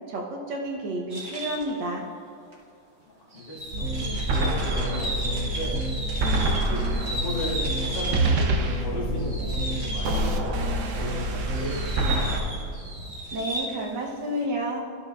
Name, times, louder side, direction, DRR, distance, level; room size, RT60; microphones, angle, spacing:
voice 1, 0.1-2.0 13.3-14.9, right 1 dB, 75° right, -1 dB, 1.7 m, -30 dB
sound 1, 1.1-1.8 2.5-2.6 3.3-8.6 8.9-10.5 11.0-13.9, right 1 dB, 40° right, 1.4 m, -35 dB
voice 2, 3.3-5.8 6.4-12.4, left 1 dB, 75° left, -4 dB, 2.3 m, -36 dB
sound 2, 3.7-12.4, right 1 dB, 60° right, 0.8 m, -26 dB
12.0 x 7.0 x 2.4 m, 2.5 s
omnidirectional pair, 2.0 m